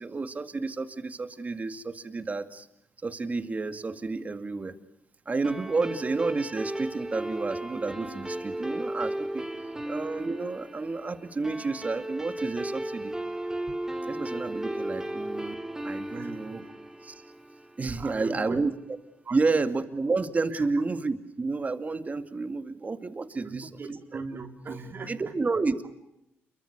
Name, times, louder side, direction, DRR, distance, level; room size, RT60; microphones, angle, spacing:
voice 1, 0.0-2.7 3.0-4.7 5.3-9.5 9.9-13.1 13.7-13.8 14.1-15.6 15.8-16.6 17.0-17.1 17.8-18.7 19.3-23.7 25.1-25.8, right 3 dB, 30° right, 9 dB, 2.3 m, -30 dB
sound 1, 5.4-18.2, right 1 dB, 10° right, 2.8 m, -35 dB
voice 2, 16.1-16.7 17.9-18.6 19.2-19.4 20.5-20.8 23.4-25.4, right 4 dB, 50° right, 4 dB, 4.1 m, -40 dB
28.0 x 23.5 x 6.7 m, 0.83 s
cardioid pair, 80°, 5 cm